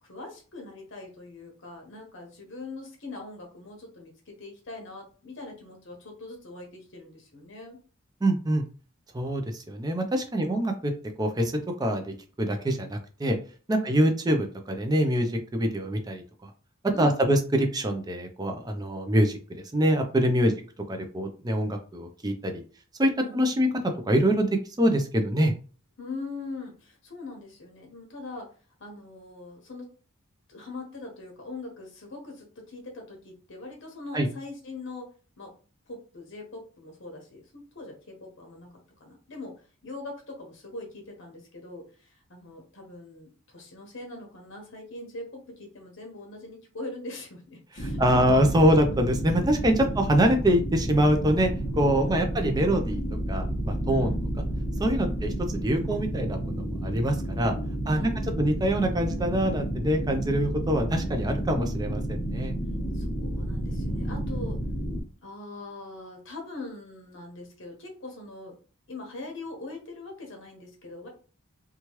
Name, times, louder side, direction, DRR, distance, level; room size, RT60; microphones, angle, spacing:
voice 1, 0.0-7.8 10.3-10.7 13.7-14.0 16.9-17.4 20.4-20.6 23.2-23.6 26.0-28.5 28.8-29.9 30.5-35.1 35.4-35.5 35.9-38.7 39.0-39.5 39.8-48.3 49.8-50.0 51.9-52.3 53.9-54.2 55.0-55.2 57.9-58.5 62.9-64.6 65.2-68.6 68.9-71.1, left 2 dB, 60° left, 2 dB, 1.0 m, -42 dB
voice 2, 8.2-8.6 9.1-10.9 11.2-11.5 11.8-13.4 13.7-16.5 17.0-20.5 20.9-22.6 23.0-23.7 24.1-24.5 24.8-25.5 34.1-34.3 47.8-53.0 53.3-54.1 54.8-55.3 55.6-57.5 57.9-58.1 58.4-62.6, equal, 20° right, 4 dB, 0.4 m, -25 dB
sound 1, 47.8-65.0, right 1 dB, 35° left, 0.9 m, -31 dB
3.0 x 2.3 x 3.0 m, 0.39 s
head